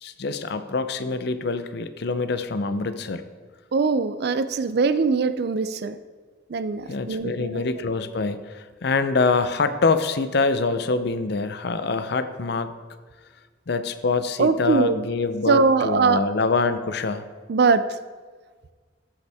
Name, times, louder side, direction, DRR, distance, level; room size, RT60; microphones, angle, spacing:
voice 1, 0.0-3.3 6.9-12.7 13.7-17.3, left 4 dB, 60° left, 11 dB, 0.5 m, -25 dB
voice 2, 3.7-6.0 6.5-7.6 14.4-15.0 15.5-16.2 17.5-17.8, right 4 dB, 55° right, 13 dB, 0.4 m, -21 dB
14.0 x 5.4 x 3.5 m, 1.5 s
head